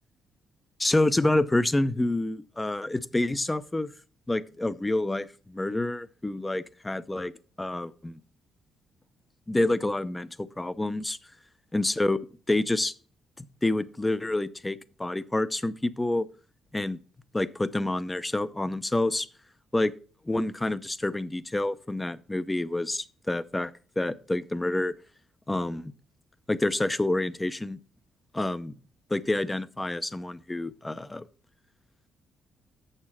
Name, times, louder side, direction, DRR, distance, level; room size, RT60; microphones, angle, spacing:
voice 1, 0.8-3.9 4.3-7.3 7.6-8.2 9.5-11.2 11.7-12.9 13.4-16.3 16.7-17.0 17.3-19.3 19.7-19.9 20.3-24.9 25.5-25.9 26.5-27.8 28.3-28.8 29.1-31.2, left 2 dB, 15° left, 15 dB, 0.6 m, -28 dB
7.0 x 6.7 x 6.0 m, 0.39 s
cardioid pair, 90°, 0 cm